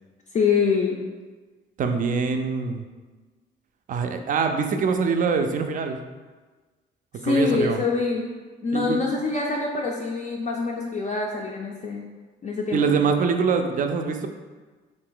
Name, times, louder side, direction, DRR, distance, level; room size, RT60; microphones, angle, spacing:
voice 1, 0.3-1.0 7.1-8.3 8.6-12.1 12.4-13.0, left 4 dB, 40° left, -2 dB, 0.4 m, -25 dB
voice 2, 1.8-2.8 3.9-6.0 7.2-7.8 8.7-9.0 12.7-14.3, right 5 dB, 45° right, 6 dB, 0.4 m, -24 dB
2.9 x 2.5 x 3.8 m, 1.3 s
cardioid pair, 90°, 20 cm